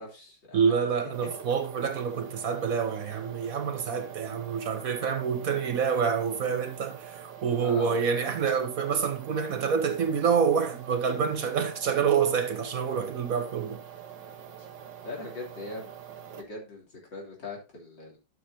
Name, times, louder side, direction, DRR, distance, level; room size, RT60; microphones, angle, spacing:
voice 1, 0.0-0.9 7.6-8.1 14.6-14.7 15.0-15.9 16.3-18.2, left 3 dB, 85° left, 4.1 m, -41 dB
voice 2, 0.5-13.8, right 6 dB, 55° right, 1.3 m, -27 dB
sound 1, 1.1-16.4, right 9 dB, 85° right, 1.8 m, -45 dB
12.0 x 6.6 x 2.7 m
omnidirectional pair, 1.9 m